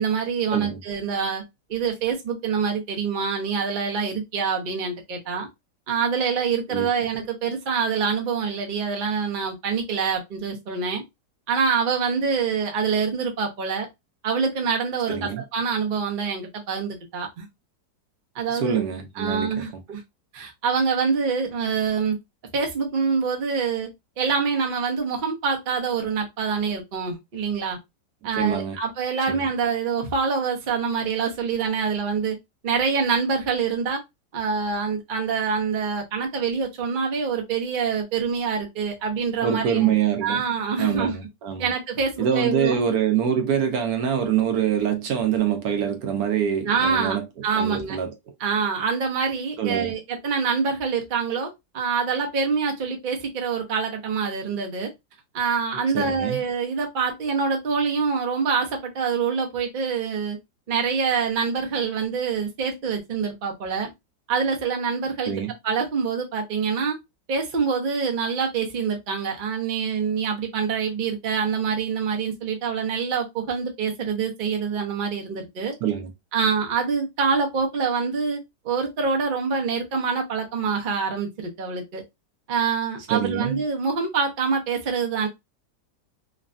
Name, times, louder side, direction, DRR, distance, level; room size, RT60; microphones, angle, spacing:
voice 1, 0.0-1.4 1.7-5.5 5.9-11.0 11.5-13.9 14.2-17.5 18.3-18.8 19.2-20.0 20.3-22.2 22.5-23.9 24.2-27.8 28.2-32.4 32.6-34.0 34.3-39.9 40.2-41.2 41.6-42.8 46.7-47.2 47.4-48.0 48.4-54.9 55.3-60.4 60.7-63.9 64.3-65.3 65.6-67.0 67.3-75.7 76.3-78.4 78.6-82.0 82.5-85.3, right 5 dB, 55° right, 0.5 m, -25 dB
voice 2, 15.1-15.4 18.5-19.5 28.3-28.8 29.3-29.5 39.4-40.4 40.8-41.7 42.2-47.2 47.5-48.1 49.6-49.9 55.9-56.4 65.3-65.5 75.8-76.1 83.1-83.6, right 8 dB, 70° right, 1.0 m, -25 dB
3.2 x 2.2 x 2.5 m
omnidirectional pair, 1.8 m